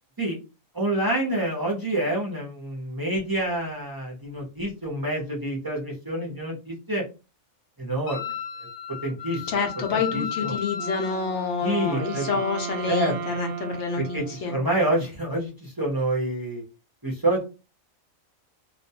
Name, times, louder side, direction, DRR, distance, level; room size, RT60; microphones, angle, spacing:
voice 1, 0.7-7.0 7.8-8.3 9.0-9.5 9.9-10.6 11.6-12.2 12.9-13.2 14.0-16.6 17.0-17.4, right 1 dB, 25° right, -3 dB, 0.5 m, -27 dB
Wind instrument woodwind instrument, 8.1-11.3, left 7 dB, 85° left, 1.1 m, -34 dB
voice 2, 9.5-14.5, left 5 dB, 65° left, 3 dB, 0.8 m, -28 dB
Wind instrument woodwind instrument 2, 10.7-15.0, right 6 dB, 65° right, 0.9 m, -36 dB
2.4 x 2.2 x 2.7 m, 0.30 s
omnidirectional pair, 1.5 m